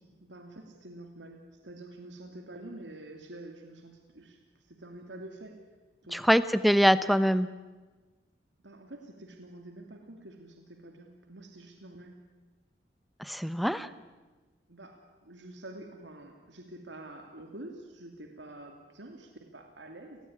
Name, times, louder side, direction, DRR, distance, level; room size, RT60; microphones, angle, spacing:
voice 1, 0.2-5.6 6.0-6.2 8.6-12.1 14.7-20.2, right 1 dB, 80° right, 4 dB, 2.6 m, -47 dB
voice 2, 6.1-7.5 13.2-13.9, equal, ahead, 14 dB, 0.9 m, -24 dB
29.5 x 19.0 x 9.7 m, 1.3 s
head